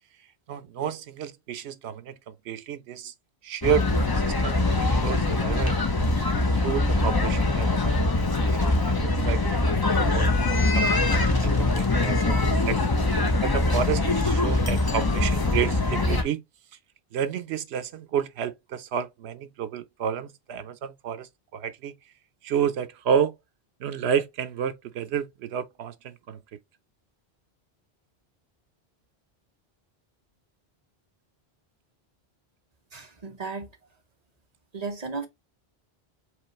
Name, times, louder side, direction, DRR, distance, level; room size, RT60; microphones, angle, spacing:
voice 1, 0.5-3.1 3.4-3.9 4.1-5.8 6.5-12.9 13.1-16.4 17.1-21.9 22.4-23.3 23.8-26.4, right 8 dB, 80° right, 0.9 m, -31 dB
sound 1, 3.6-16.2, left 2 dB, 25° left, 0.7 m, -23 dB
voice 2, 32.9-33.7 34.7-35.3, right 4 dB, 40° right, 1.1 m, -34 dB
4.9 x 3.1 x 3.0 m
omnidirectional pair, 1.1 m